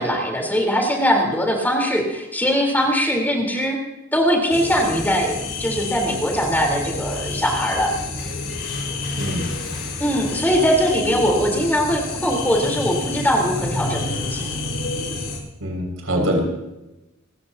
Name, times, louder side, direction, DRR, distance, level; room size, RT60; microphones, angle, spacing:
voice 1, 0.0-3.8 4.1-7.9 10.0-14.4, equal, 10° left, 1 dB, 4.1 m, -21 dB
sound 1, 4.5-15.4, left 3 dB, 60° left, 5.2 m, -29 dB
voice 2, 15.6-16.4, equal, 85° right, 1 dB, 6.3 m, -23 dB
30.0 x 15.0 x 2.9 m, 0.97 s
head